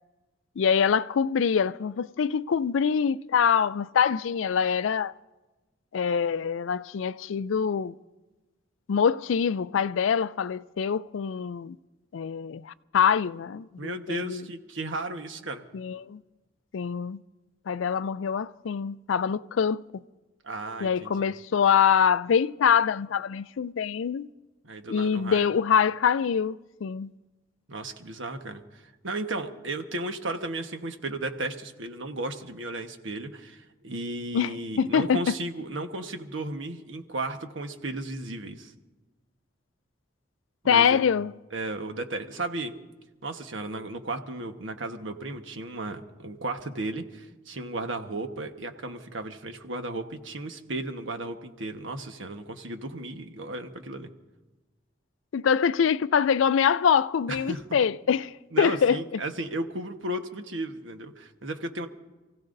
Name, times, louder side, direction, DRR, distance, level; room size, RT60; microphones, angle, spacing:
voice 1, 0.6-5.1 5.9-7.9 8.9-11.8 12.1-14.5 15.7-16.2 16.7-17.2 17.7-20.0 20.8-24.3 24.9-27.1 34.3-35.2 40.7-41.3 55.3-59.2, left 7 dB, 75° left, 0.4 m, -24 dB
voice 2, 13.8-15.6 20.4-21.3 24.6-25.5 27.7-38.7 40.6-41.0 41.5-42.7 43.2-54.1 57.3-57.6 58.5-61.9, right 2 dB, 75° right, 1.2 m, -34 dB
28.5 x 16.0 x 2.6 m
head